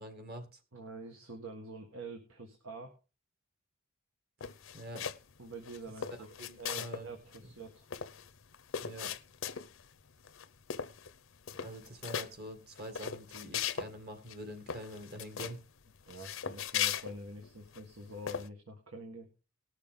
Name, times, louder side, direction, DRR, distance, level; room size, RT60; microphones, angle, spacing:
voice 1, 0.0-0.6 4.7-5.0 6.4-7.1 8.8-9.1 11.6-15.6, right 1 dB, 50° right, 6 dB, 2.1 m, -45 dB
voice 2, 0.7-2.9 5.4-6.3 6.6-7.8 16.1-19.3, right 2 dB, 80° right, 3 dB, 1.6 m, -46 dB
sound 1, 4.4-5.3 5.6-7.1 7.3-7.4 7.7-9.9 10.3-10.5 10.7-11.2 11.4-12.3 12.8-13.9 14.3-14.4 14.7-15.6 16.1-17.8 18.3-18.5, left 8 dB, 70° left, 0.7 m, -38 dB
19.5 x 6.6 x 3.7 m, 0.31 s
head